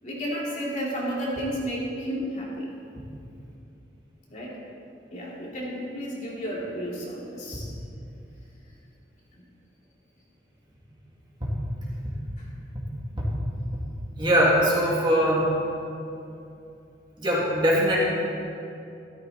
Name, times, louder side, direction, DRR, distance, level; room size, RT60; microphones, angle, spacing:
voice 1, 0.0-2.7 4.3-4.6 5.1-7.7 12.4-12.5, equal, 40° left, -5 dB, 2.7 m, -32 dB
voice 2, 14.2-15.5 17.2-18.0, equal, 25° right, -5 dB, 2.5 m, -21 dB
14.0 x 13.5 x 4.2 m, 2.7 s
head